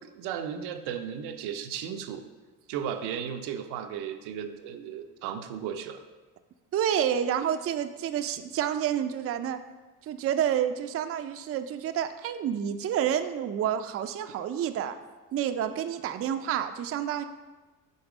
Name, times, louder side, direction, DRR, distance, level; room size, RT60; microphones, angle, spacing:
voice 1, 0.0-2.2 2.7-6.0, right 8 dB, 90° right, 6 dB, 0.6 m, -35 dB
voice 2, 6.7-9.6 10.0-14.9 15.3-17.2, right 9 dB, 40° right, 9 dB, 0.4 m, -29 dB
5.3 x 4.0 x 4.9 m, 1.2 s
cardioid pair, 100°, 38 cm